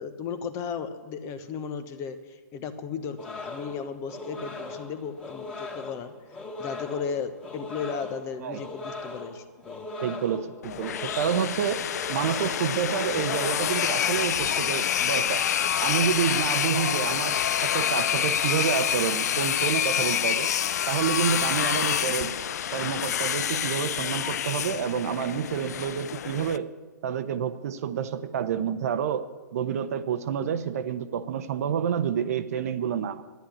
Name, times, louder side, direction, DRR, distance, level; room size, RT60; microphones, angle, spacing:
voice 1, 0.0-6.1 6.6-9.9, left 6 dB, 30° left, 10 dB, 1.1 m, -35 dB
sound 1, 3.2-14.2, left 2 dB, 10° left, 2.1 m, -39 dB
voice 2, 10.0-15.4 15.8-20.5 20.9-22.4 22.7-26.7 27.0-29.3 29.5-33.2, right 8 dB, 55° right, 11 dB, 0.9 m, -28 dB
sound 2, 10.6-26.6, left 9 dB, 60° left, 0.5 m, -27 dB
11.5 x 10.5 x 8.6 m, 1.3 s
hypercardioid pair, 125°, 10 cm